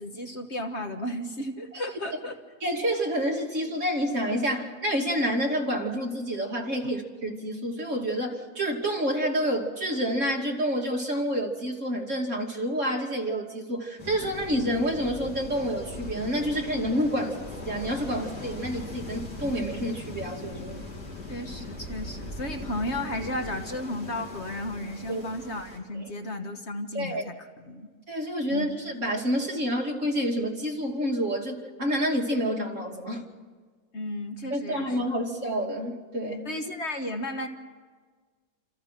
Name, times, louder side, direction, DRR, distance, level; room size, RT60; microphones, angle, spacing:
voice 1, 0.0-2.4 6.8-7.0 21.3-27.4 27.6-27.9 28.5-28.7 33.9-35.0 36.4-37.5, left 1 dB, 45° left, 5 dB, 1.6 m, -34 dB
voice 2, 2.6-20.8 25.1-25.2 26.0-26.1 26.9-27.2 28.1-33.3 34.5-36.5, equal, 50° right, 0 dB, 3.1 m, -28 dB
sound 1, 14.0-25.8, left 2 dB, 85° left, 3.8 m, -40 dB
28.5 x 27.5 x 5.9 m, 1.5 s
omnidirectional pair, 1.6 m